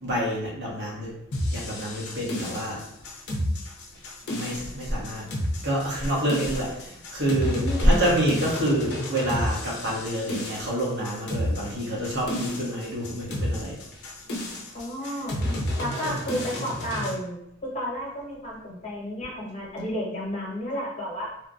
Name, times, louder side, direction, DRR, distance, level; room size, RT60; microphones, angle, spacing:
voice 1, 0.0-1.1 1.5-2.8 4.3-5.2 5.6-13.8 16.0-16.1, right 1 dB, 55° right, -5 dB, 1.1 m, -27 dB
sound 1, 1.3-17.2, left 1 dB, 55° left, 0.6 m, -31 dB
voice 2, 7.6-8.0 14.7-15.4 15.8-21.3, equal, 35° left, -4 dB, 1.0 m, -32 dB
3.2 x 2.1 x 2.5 m, 0.77 s
head